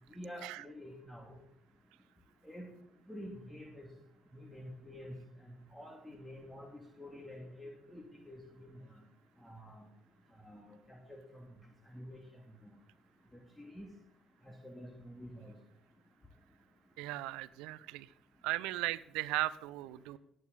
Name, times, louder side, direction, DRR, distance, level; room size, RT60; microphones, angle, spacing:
voice 1, 0.1-1.4 2.4-2.7 3.1-3.9 4.3-5.1 5.4-6.7 7.0-8.8 9.4-9.9 10.4-11.5 11.9-12.2 13.6-13.9 14.4-15.5, equal, 10° left, 2 dB, 2.4 m, -48 dB
voice 2, 17.0-18.1 18.4-20.2, right 18 dB, 75° right, 20 dB, 0.5 m, -37 dB
18.0 x 9.1 x 4.1 m, 0.79 s
hypercardioid pair, 55°, 0 cm